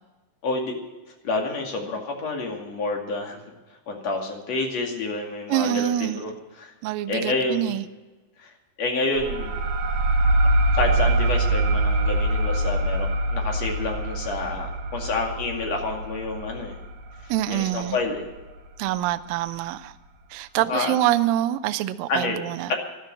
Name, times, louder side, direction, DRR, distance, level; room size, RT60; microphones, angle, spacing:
voice 1, 0.4-0.7 1.2-3.4 3.9-6.3 6.6-6.7 7.1-7.7 8.4-8.5 8.8-9.6 10.7-16.7 17.2-18.2 20.7-20.9 22.1-22.4 22.7-22.8, left 3 dB, 45° left, 3.1 m, -28 dB
voice 2, 5.5-6.2 6.8-7.9 17.3-18.0 18.8-19.9 20.3-22.7, right 13 dB, 80° right, 2.0 m, -25 dB
sound 1, 9.2-18.4, right 1 dB, 55° right, 2.5 m, -24 dB
13.0 x 12.0 x 7.6 m
omnidirectional pair, 4.8 m